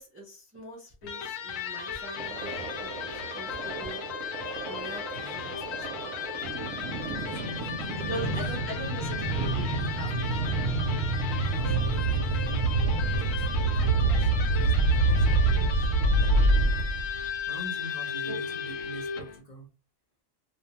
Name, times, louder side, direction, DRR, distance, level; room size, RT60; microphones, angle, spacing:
voice 1, 0.0-3.1 3.3-4.0 4.7-6.5 7.1-7.3 7.9-10.2 18.3-18.4, equal, 20° right, -2 dB, 0.3 m, -42 dB
Electric guitar, 1.0-19.4, left 6 dB, 85° left, 1.0 m, -36 dB
sound 1, 2.2-17.3, right 2 dB, 70° right, 0.8 m, -27 dB
voice 2, 5.1-5.5 7.2-8.3 11.4-12.8 13.2-16.7 17.5-19.7, right 1 dB, 40° left, -1 dB, 0.7 m, -45 dB
2.5 x 2.1 x 2.8 m, 0.33 s
omnidirectional pair, 1.3 m